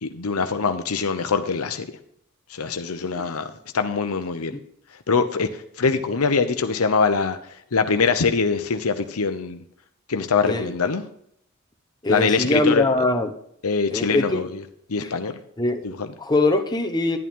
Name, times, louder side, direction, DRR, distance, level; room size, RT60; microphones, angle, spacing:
voice 1, 0.0-1.9 2.5-4.5 5.1-7.4 7.7-9.6 10.1-11.0 12.1-12.9 13.6-14.6 14.9-15.3 15.8-16.1, left 5 dB, 80° left, 8 dB, 0.8 m, -23 dB
voice 2, 12.0-13.3 13.9-14.5 15.0-15.1 15.6-15.8 16.2-17.2, left 2 dB, 20° left, 4 dB, 1.1 m, -22 dB
11.0 x 10.5 x 3.7 m, 0.70 s
head